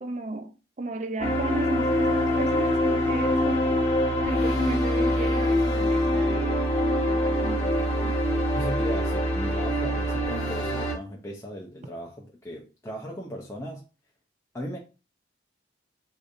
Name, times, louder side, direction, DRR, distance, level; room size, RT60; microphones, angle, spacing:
voice 1, 0.0-3.8 4.2-6.6 7.1-8.2, right 2 dB, 35° right, 0.4 m, -35 dB
sound 1, 1.2-10.9, left 1 dB, 30° left, 1.2 m, -24 dB
voice 2, 8.5-13.8 14.5-14.8, equal, 15° left, 0.5 m, -37 dB
4.9 x 2.6 x 2.5 m
head